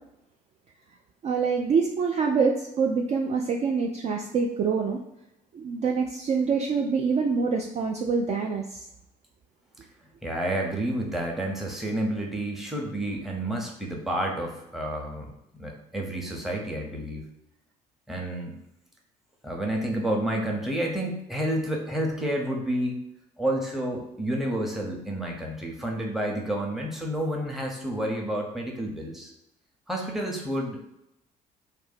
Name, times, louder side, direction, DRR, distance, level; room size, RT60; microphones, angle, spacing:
voice 1, 1.2-5.0 5.5-8.9, right 5 dB, 35° right, 1 dB, 0.4 m, -25 dB
voice 2, 10.2-17.3 18.1-18.5 19.4-23.0 23.4-29.3 29.9-30.9, right 1 dB, ahead, 0 dB, 0.8 m, -30 dB
2.6 x 2.1 x 4.0 m, 0.83 s
figure-of-eight pair, 50°, 21 cm